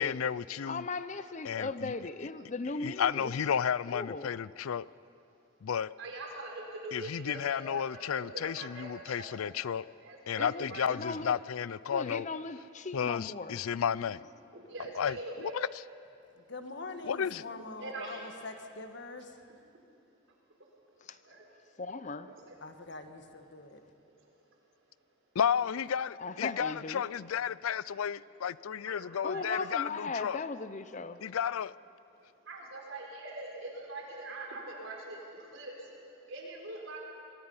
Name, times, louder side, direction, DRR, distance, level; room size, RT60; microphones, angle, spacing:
voice 1, 0.0-0.9 1.4-1.9 2.8-4.9 5.6-5.9 6.9-9.8 10.3-12.3 12.9-14.2 15.0-15.7 17.0-17.4 25.4-30.4 31.2-31.8, left 8 dB, 85° left, 0.4 m, -32 dB
voice 2, 0.7-3.3 3.9-4.3 10.4-11.4 11.9-13.6 21.8-22.3 26.2-27.0 29.2-31.2, left 3 dB, 35° left, 0.6 m, -38 dB
voice 3, 6.0-9.4 10.0-10.8 14.5-15.6 17.8-18.3 21.2-21.5 22.1-22.6 24.0-24.1 28.8-29.8 32.4-37.0, right 2 dB, 65° right, 4.6 m, -43 dB
voice 4, 16.4-19.4 22.6-23.8, left 3 dB, 55° left, 1.5 m, -44 dB
24.5 x 23.0 x 5.6 m
head